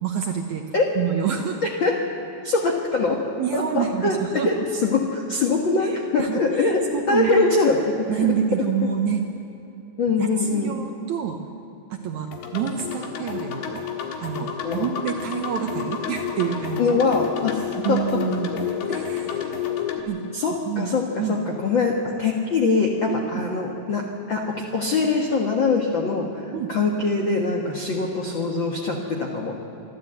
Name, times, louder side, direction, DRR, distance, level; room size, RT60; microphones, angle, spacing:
voice 1, 0.0-0.7 1.0-1.6 3.4-4.6 5.8-7.4 8.1-9.2 10.2-11.4 11.9-13.8 14.2-17.0 17.8-18.6 18.9-19.6 20.0-20.3 20.7-20.9 21.2-21.4 23.1-23.4 26.5-26.7, right 8 dB, 75° right, 4 dB, 1.7 m, -27 dB
voice 2, 2.4-3.2 3.5-6.8 7.1-8.1 10.0-10.7 14.6-14.9 16.8-17.6 17.9-18.0 20.3-29.6, left 4 dB, 65° left, 0 dB, 1.2 m, -23 dB
sound 1, 12.3-20.0, left 8 dB, 80° left, 3.5 m, -30 dB
26.0 x 13.0 x 8.0 m, 3.0 s
omnidirectional pair, 4.6 m